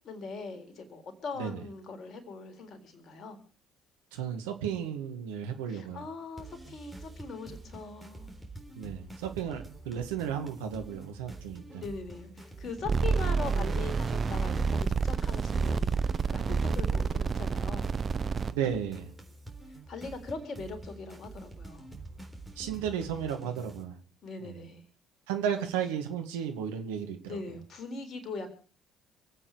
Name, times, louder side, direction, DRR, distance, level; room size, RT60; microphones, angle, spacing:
voice 1, 0.0-3.4 5.7-8.3 11.8-17.9 19.9-21.9 24.2-24.8 25.6-25.7 27.3-28.5, left 4 dB, 45° left, 7 dB, 3.8 m, -41 dB
voice 2, 4.1-6.1 8.8-11.8 18.5-19.1 22.6-24.0 24.4-24.6 25.3-27.4, right 8 dB, 70° right, 6 dB, 1.9 m, -34 dB
sound 1, 6.4-23.8, right 2 dB, 5° right, 4.0 m, -47 dB
sound 2, 12.9-18.5, right 5 dB, 35° right, 0.9 m, -28 dB
26.5 x 8.8 x 5.0 m, 0.39 s
figure-of-eight pair, 50°, 0 cm